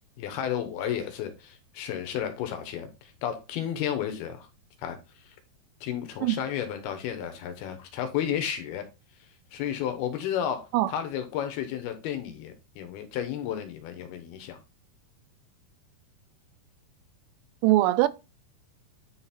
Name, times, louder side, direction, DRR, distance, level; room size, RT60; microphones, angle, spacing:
voice 1, 0.2-4.5 4.8-5.0 5.8-8.8 9.5-14.6, left 9 dB, 75° left, 2.8 m, -32 dB
voice 2, 17.6-18.1, right 16 dB, 85° right, 2.7 m, -21 dB
9.8 x 3.9 x 4.2 m
omnidirectional pair, 4.9 m